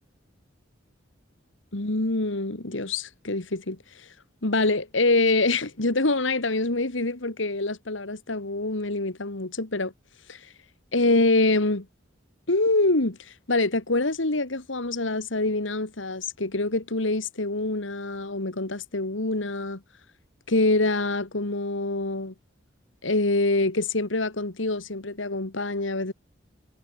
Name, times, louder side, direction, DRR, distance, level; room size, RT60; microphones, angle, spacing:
voice 1, 1.7-4.1 4.4-9.9 10.3-10.4 10.9-11.9 12.5-19.8 20.5-22.3 23.0-26.1, left 2 dB, 80° left, 2.2 m, -25 dB
head